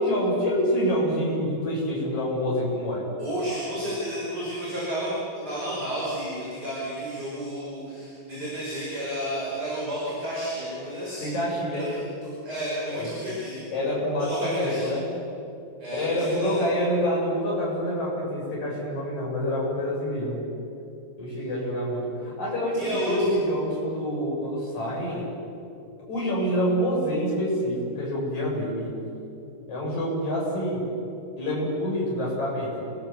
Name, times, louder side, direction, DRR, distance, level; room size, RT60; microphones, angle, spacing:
voice 1, 0.0-3.1 11.2-11.9 12.9-13.1 13.7-15.0 15.9-20.4 21.2-25.4 26.1-28.9 29.7-30.9 31.4-32.9, equal, 40° left, -4 dB, 8.1 m, -27 dB
voice 2, 3.2-11.3 11.7-13.6 14.2-14.9 15.8-16.5 22.7-23.3, right 1 dB, 20° right, -6 dB, 6.0 m, -31 dB
28.5 x 21.5 x 7.4 m, 2.7 s
omnidirectional pair, 5.2 m